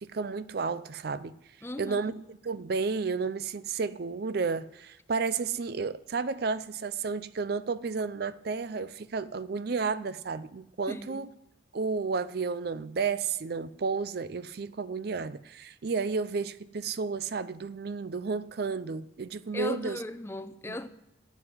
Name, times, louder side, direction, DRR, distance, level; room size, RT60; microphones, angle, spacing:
voice 1, 0.0-1.3 1.8-11.3 11.7-20.0 20.7-20.8, right 4 dB, 50° right, 0.4 m, -32 dB
voice 2, 1.6-2.1 10.9-11.3 19.5-20.9, left 1 dB, 15° left, 0.5 m, -37 dB
12.0 x 7.8 x 9.5 m
head